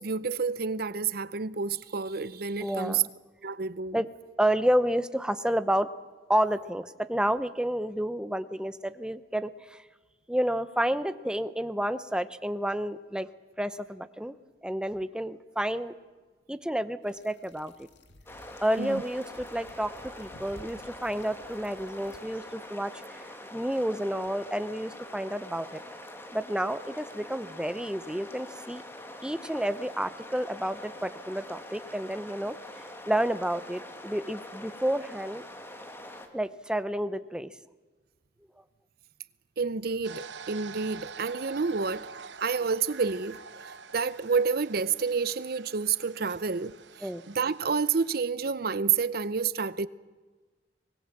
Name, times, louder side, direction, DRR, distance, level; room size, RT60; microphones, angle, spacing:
voice 1, 0.0-3.0 3.4-4.0 18.8-19.0 39.6-42.1 42.4-43.4 43.9-49.9, right 5 dB, 60° right, 0.7 m, -29 dB
voice 2, 2.6-3.1 3.9-4.1 4.4-5.9 6.3-9.8 10.3-13.3 13.6-14.3 14.6-15.9 16.5-17.9 18.6-25.8 26.3-28.8 29.2-32.6 33.1-35.4 36.3-37.5 47.0-47.2, right 1 dB, 5° right, 0.7 m, -30 dB
sound 1, 17.0-22.2, left 1 dB, 80° left, 2.0 m, -54 dB
sound 2, 18.3-36.3, left 1 dB, 15° left, 1.8 m, -44 dB
sound 3, 40.0-48.2, right 6 dB, 90° right, 0.9 m, -46 dB
24.5 x 20.5 x 7.3 m
head